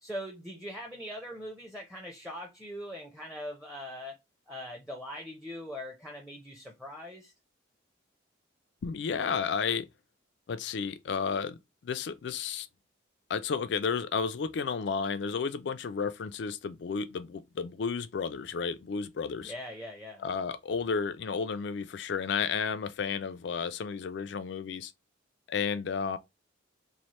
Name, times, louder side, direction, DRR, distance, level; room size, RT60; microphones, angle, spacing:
voice 1, 0.0-4.2 4.5-7.3 19.4-20.2, equal, 5° right, 0.6 m, -41 dB
voice 2, 8.8-9.9 10.5-12.7 13.3-19.5 20.2-24.9 25.5-26.2, left 5 dB, 65° left, 0.3 m, -32 dB
3.1 x 2.1 x 4.1 m
head